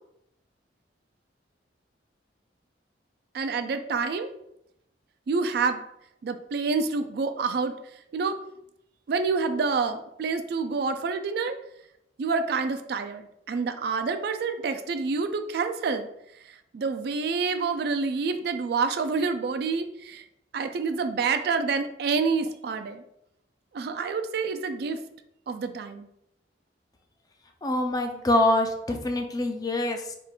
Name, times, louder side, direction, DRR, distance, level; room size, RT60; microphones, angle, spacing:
voice 1, 3.3-4.3 5.3-5.8 6.2-7.8 8.1-8.4 9.1-11.6 12.2-16.1 16.5-20.2 20.5-23.0 23.7-25.0 25.5-26.1, right 4 dB, 60° right, 8 dB, 0.3 m, -28 dB
voice 2, 27.6-30.2, left 1 dB, 20° left, 5 dB, 0.4 m, -25 dB
3.5 x 2.4 x 4.3 m, 0.80 s
head